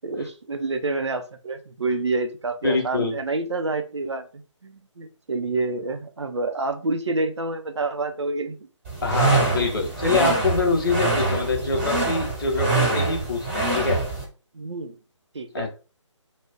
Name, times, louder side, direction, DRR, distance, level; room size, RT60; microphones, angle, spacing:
voice 1, 0.0-8.6 14.5-15.0 15.3-15.7, right 3 dB, 60° right, 7 dB, 0.5 m, -28 dB
voice 2, 2.6-3.2 9.0-14.0 15.5-15.7, left 3 dB, 45° left, 3 dB, 0.7 m, -24 dB
sound 1, 8.9-14.2, right 3 dB, 20° right, 1.2 m, -24 dB
2.3 x 2.1 x 3.4 m, 0.34 s
figure-of-eight pair, 145°, 16 cm